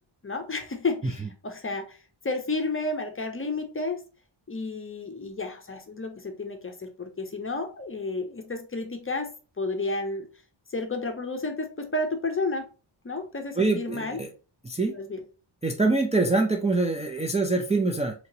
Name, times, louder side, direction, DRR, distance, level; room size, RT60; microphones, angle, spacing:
voice 1, 0.2-2.0 2.2-4.0 4.5-10.3 10.7-12.6 13.0-14.2 14.9-15.2, left 3 dB, 25° left, 6 dB, 0.6 m, -31 dB
voice 2, 13.6-14.3 14.7-14.9 15.6-18.1, right 3 dB, 15° right, 1 dB, 0.4 m, -24 dB
2.9 x 2.8 x 2.7 m, 0.35 s
cardioid pair, 70°, 49 cm